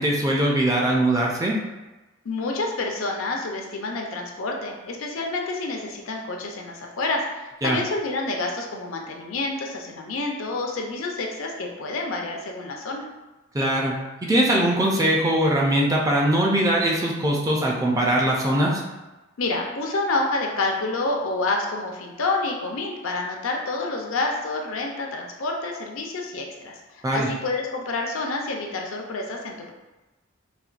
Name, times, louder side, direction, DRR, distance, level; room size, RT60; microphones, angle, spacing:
voice 1, 0.0-1.5 7.6-7.8 13.5-14.0 14.2-18.8 27.0-27.3, right 1 dB, 15° right, -2 dB, 0.4 m, -21 dB
voice 2, 2.2-13.0 19.4-26.7 27.1-29.7, left 3 dB, 85° left, 1 dB, 0.5 m, -28 dB
4.2 x 2.2 x 2.4 m, 1.1 s
head